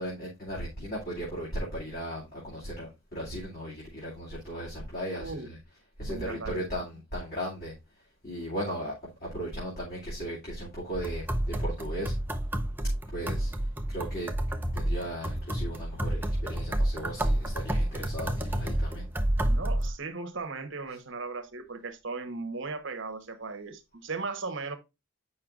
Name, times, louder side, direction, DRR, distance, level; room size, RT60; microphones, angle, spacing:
voice 1, 0.0-7.7 8.2-12.1 13.1-13.5 13.9-14.3 14.7-19.1, equal, 45° left, 2.5 m, -36 dB
voice 2, 5.2-5.5 6.0-6.6 19.4-24.8, right 3 dB, 60° right, 1.1 m, -37 dB
sound 1, 10.9-19.9, right 1 dB, 10° right, 0.5 m, -29 dB
8.5 x 5.6 x 2.4 m
head